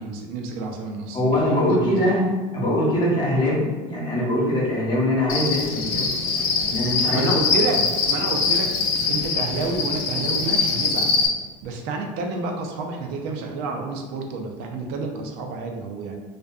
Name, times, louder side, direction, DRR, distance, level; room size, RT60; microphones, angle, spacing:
voice 1, 0.0-2.1 7.1-8.7 9.1-11.1 11.6-16.2, right 3 dB, 70° right, 3 dB, 0.4 m, -29 dB
voice 2, 1.1-2.3 2.5-6.1 6.7-7.3, left 1 dB, 25° left, -4 dB, 0.9 m, -22 dB
Cricket, 5.3-11.3, left 4 dB, 75° left, 0.5 m, -23 dB
2.5 x 2.4 x 2.2 m, 1.3 s
supercardioid pair, 110°, 17 cm